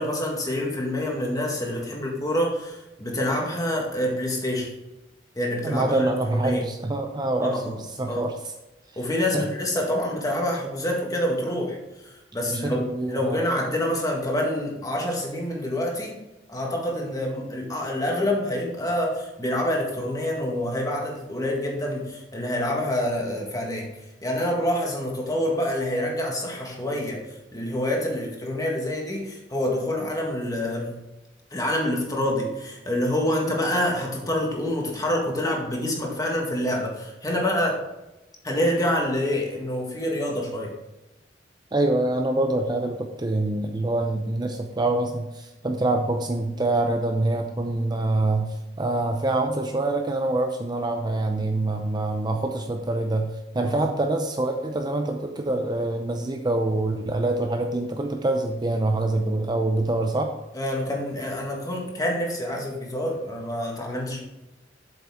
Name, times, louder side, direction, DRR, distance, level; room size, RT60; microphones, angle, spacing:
voice 1, 0.0-4.7 5.4-6.1 6.4-6.6 7.5-7.8 8.1-8.3 9.0-16.2 16.5-23.9 24.2-30.9 31.5-37.8 38.4-40.7 53.6-53.9 60.5-64.2, left 1 dB, 20° left, -1 dB, 1.8 m, -27 dB
voice 2, 5.6-7.7 8.0-8.3 9.3-9.4 12.5-13.5 41.7-60.3, right 2 dB, 25° right, 4 dB, 0.6 m, -25 dB
7.7 x 7.4 x 3.6 m, 0.98 s
head